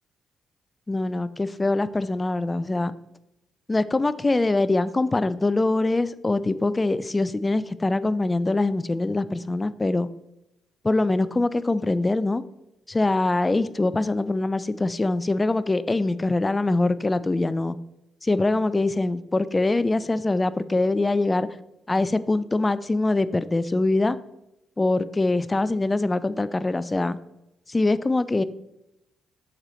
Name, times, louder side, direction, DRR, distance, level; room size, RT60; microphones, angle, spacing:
voice 1, 0.9-2.9 3.7-10.1 10.8-12.4 12.9-17.8 18.2-21.5 21.9-24.2 24.8-27.2 27.7-28.4, left 2 dB, 25° left, 15 dB, 0.4 m, -23 dB
7.2 x 6.3 x 3.1 m, 0.90 s
figure-of-eight pair, 40°, 0 cm